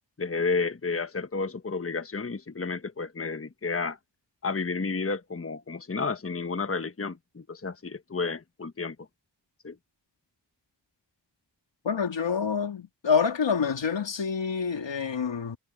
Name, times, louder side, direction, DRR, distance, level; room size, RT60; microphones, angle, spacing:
voice 1, 0.2-4.0 4.4-9.0 9.6-9.8, left 4 dB, 30° left, 1.2 m, -31 dB
voice 2, 11.8-15.6, left 6 dB, 90° left, 3.0 m, -27 dB
cardioid pair, 40°, 43 cm